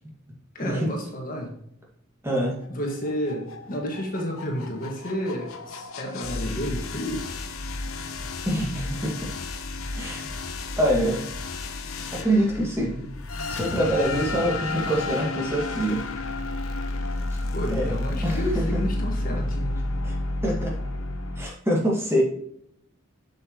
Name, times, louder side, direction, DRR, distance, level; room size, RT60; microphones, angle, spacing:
voice 1, 0.6-1.5 2.7-7.2 17.5-19.8, equal, 40° left, 0 dB, 1.8 m, -31 dB
voice 2, 2.2-2.6 8.5-9.3 9.9-10.3 10.8-11.2 12.1-13.1 13.5-16.0 17.7-18.8 20.0-20.1 20.4-20.7 21.4-22.2, equal, 10° right, -3 dB, 2.0 m, -25 dB
sound 1, 2.6-21.5, left 2 dB, 90° left, 0.9 m, -31 dB
7.8 x 6.9 x 3.0 m, 0.71 s
head